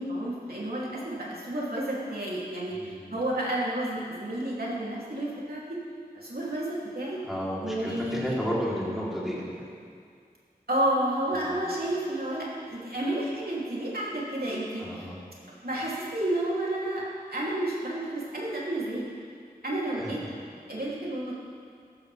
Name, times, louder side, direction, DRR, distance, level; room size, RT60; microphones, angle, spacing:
voice 1, 0.0-5.8 6.1-7.2 7.6-8.3 10.7-15.1 15.6-17.0 17.3-19.0 19.6-20.2 20.7-21.3, right 1 dB, 70° right, -6 dB, 3.0 m, -31 dB
voice 2, 2.7-3.2 7.2-9.7 11.3-11.6 14.8-15.2 19.9-20.3, equal, ahead, -7 dB, 3.4 m, -33 dB
14.0 x 13.0 x 3.5 m, 2.2 s
wide cardioid pair, 45°, 16 cm